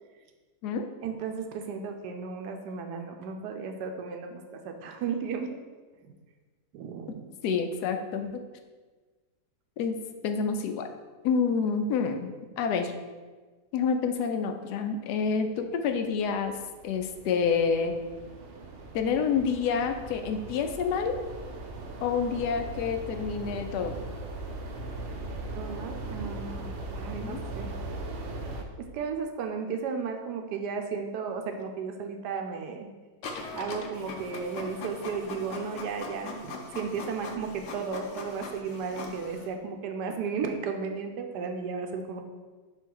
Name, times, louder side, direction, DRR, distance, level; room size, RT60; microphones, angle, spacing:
voice 1, 1.0-5.6 6.0-6.1 6.7-7.3 25.5-27.7 28.8-32.9 33.5-42.2, right 5 dB, 85° right, 4 dB, 1.2 m, -34 dB
voice 2, 7.4-8.4 9.8-10.0 10.2-10.9 11.2-13.0 13.7-16.5 16.8-17.9 18.9-21.2 22.0-23.9 27.2-27.4, left 6 dB, 80° left, 6 dB, 1.1 m, -28 dB
sound 1, 16.2-28.6, right 2 dB, 65° right, 0.5 m, -39 dB
Printer, 33.2-39.5, left 3 dB, 60° left, 0.9 m, -40 dB
5.5 x 3.8 x 4.6 m, 1.4 s
omnidirectional pair, 1.7 m